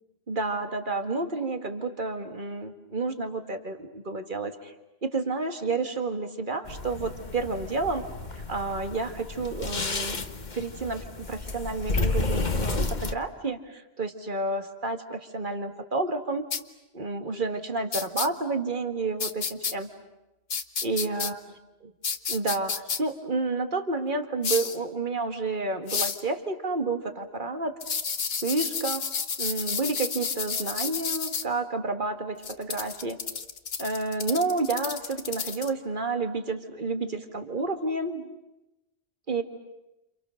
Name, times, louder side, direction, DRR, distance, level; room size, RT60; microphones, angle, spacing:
voice 1, 0.3-4.7 5.0-8.0 8.4-10.3 10.5-16.5 16.9-19.9 20.8-21.4 21.8-21.9 22.3-22.7 23.0-27.8 28.4-29.1 29.4-33.2 33.8-38.3 39.3-39.4, right 3 dB, 50° right, 7 dB, 2.1 m, -30 dB
sound 1, 6.7-13.1, left 3 dB, 45° left, 1.4 m, -31 dB
sound 2, 16.5-16.6 17.9-18.3 19.2-19.7 20.5-21.3 22.0-23.0 24.4-24.8 25.9-26.2 27.8-31.4 32.4-35.7, left 6 dB, 65° left, 1.4 m, -31 dB
30.0 x 28.5 x 6.5 m, 0.97 s
omnidirectional pair, 1.1 m